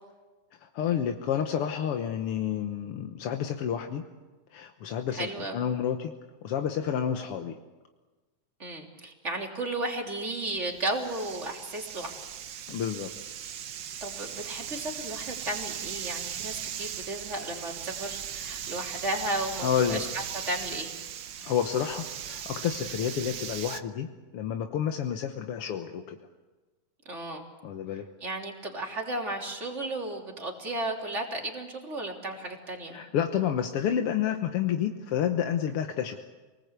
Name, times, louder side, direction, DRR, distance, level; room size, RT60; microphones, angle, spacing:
voice 1, 0.6-4.0 4.5-5.3 5.5-6.1 6.4-7.6 12.7-13.1 19.6-20.0 21.4-24.1 24.3-26.2 27.6-28.1 32.9-36.2, left 9 dB, 60° left, 5 dB, 1.7 m, -29 dB
voice 2, 5.1-5.6 8.6-12.2 14.0-20.9 27.1-27.4 28.2-33.0, right 2 dB, 25° right, 0 dB, 3.5 m, -34 dB
sound 1, 10.6-23.8, right 9 dB, 75° right, 1.0 m, -38 dB
28.0 x 19.5 x 8.2 m, 1.2 s
omnidirectional pair, 3.4 m